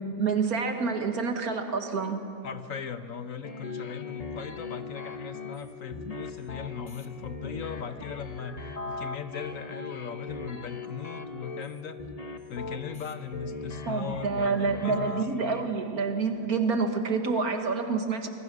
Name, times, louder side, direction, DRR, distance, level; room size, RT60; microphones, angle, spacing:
voice 1, 0.2-2.2 13.9-18.3, right 4 dB, 65° right, 5 dB, 2.1 m, -28 dB
voice 2, 2.4-12.0 12.5-15.2, left 7 dB, 60° left, 9 dB, 1.2 m, -38 dB
sound 1, 3.4-15.6, left 3 dB, 25° left, 1.1 m, -39 dB
26.5 x 19.5 x 6.2 m, 2.6 s
omnidirectional pair, 1.6 m